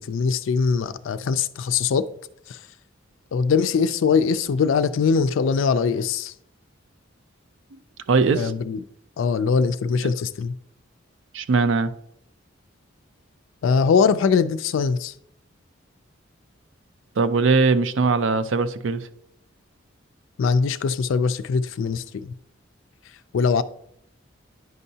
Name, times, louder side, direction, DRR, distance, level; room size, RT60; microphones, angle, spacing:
voice 1, 0.0-2.0 2.5-2.6 3.3-6.3 8.3-8.8 9.2-10.5 13.6-15.1 20.4-22.3 23.3-23.6, left 5 dB, 75° left, 0.3 m, -22 dB
voice 2, 8.1-8.5 10.0-10.1 11.3-11.9 17.2-19.1, right 4 dB, 70° right, 0.4 m, -20 dB
9.4 x 5.4 x 2.7 m
head